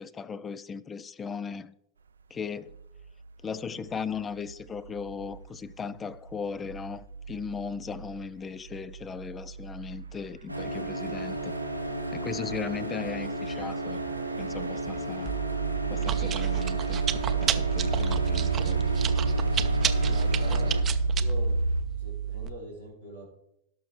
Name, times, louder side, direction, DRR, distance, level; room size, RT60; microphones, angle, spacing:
voice 1, 0.0-1.7 2.3-2.7 3.4-11.5 12.1-15.3 15.9-17.0 17.4-18.8, left 6 dB, 20° left, 0.5 m, -37 dB
sound 1, 2.7-21.8, right 2 dB, 70° right, 0.5 m, -33 dB
sound 2, 10.5-20.8, right 1 dB, 90° right, 1.2 m, -34 dB
Chewing mastication, 15.2-22.5, right 10 dB, 25° right, 0.7 m, -30 dB
voice 2, 19.8-20.7 21.2-21.5 22.0-23.3, right 2 dB, 70° left, 4.0 m, -43 dB
18.0 x 6.1 x 3.2 m
figure-of-eight pair, 90°, 0 cm